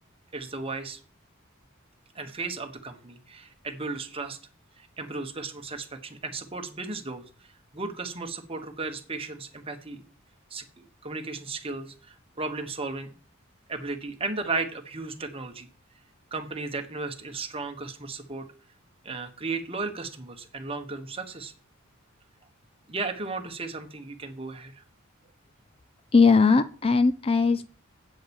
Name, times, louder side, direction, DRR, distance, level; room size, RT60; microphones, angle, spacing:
voice 1, 0.3-1.0 2.1-4.4 4.8-7.2 7.7-10.0 10.5-13.1 13.7-15.7 16.3-18.5 19.0-21.5 22.9-24.8, right 3 dB, 25° right, 6 dB, 1.4 m, -35 dB
voice 2, 26.1-27.7, left 4 dB, 25° left, 13 dB, 0.4 m, -19 dB
8.4 x 7.7 x 7.2 m, 0.41 s
head